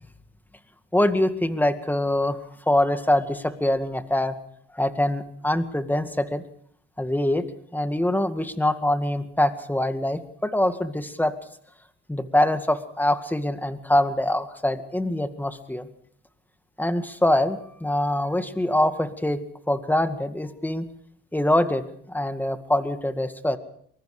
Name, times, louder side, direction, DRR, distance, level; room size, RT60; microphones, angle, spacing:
voice 1, 0.9-2.4 2.7-4.4 4.7-6.4 7.0-7.4 7.7-11.3 12.1-15.9 16.8-19.4 19.7-20.9 21.3-23.6, left 1 dB, 5° left, 9 dB, 2.1 m, -24 dB
23.5 x 22.0 x 5.0 m, 0.63 s
supercardioid pair, 80°, 35 cm